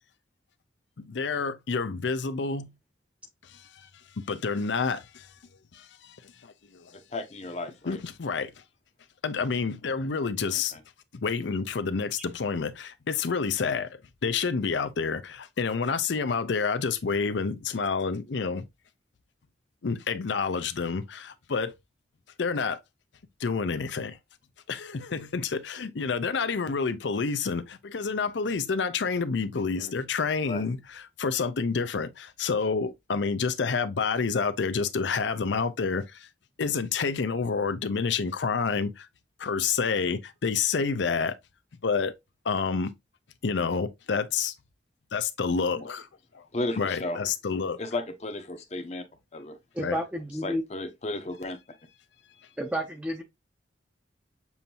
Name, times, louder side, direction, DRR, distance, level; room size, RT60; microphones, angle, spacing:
voice 1, 1.0-2.7 3.4-3.9 4.2-5.3 5.7-7.0 7.8-8.5 9.2-10.7 11.1-18.7 19.8-21.7 22.4-22.8 23.4-24.2 24.7-36.3 36.6-39.1 39.4-41.3 41.8-42.1 42.4-42.9 43.4-44.5 45.1-46.1 46.3-46.4 46.8-47.8 49.8-50.0, left 5 dB, 75° left, 0.5 m, -29 dB
voice 2, 7.1-8.0 10.7-10.8 26.4-26.5 30.5-30.6 45.8-45.9 46.5-47.2 47.8-49.0 49.3-49.6 50.4-51.6, left 2 dB, 35° left, 0.7 m, -34 dB
voice 3, 49.7-50.6 52.6-53.2, equal, 10° right, 0.6 m, -30 dB
7.0 x 2.7 x 2.8 m
head